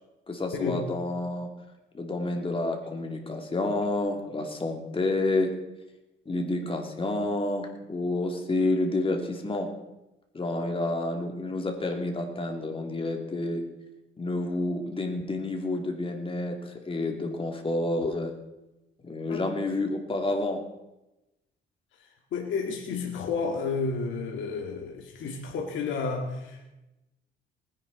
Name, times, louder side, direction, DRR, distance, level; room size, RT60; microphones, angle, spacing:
voice 1, 0.3-1.5 1.9-5.5 6.3-9.7 10.3-13.6 14.2-18.3 19.0-20.6, left 2 dB, 25° left, 3 dB, 2.8 m, -29 dB
voice 2, 22.0-26.7, left 4 dB, 75° left, 1 dB, 1.9 m, -31 dB
19.5 x 10.5 x 4.2 m, 0.96 s
cardioid pair, 90°, 20 cm